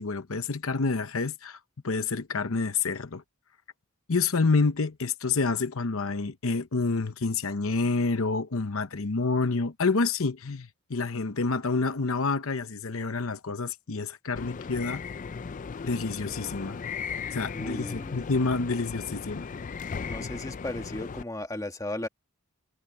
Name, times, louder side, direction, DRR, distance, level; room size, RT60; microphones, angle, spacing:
voice 1, 0.0-1.6 1.8-3.2 4.1-15.0 15.9-16.8 17.3-19.4, left 4 dB, 65° left, 0.9 m, -28 dB
sound 1, 14.4-21.2, left 5 dB, 35° left, 0.4 m, -37 dB
voice 2, 17.5-18.2 20.0-22.1, left 1 dB, 15° left, 1.6 m, -36 dB
head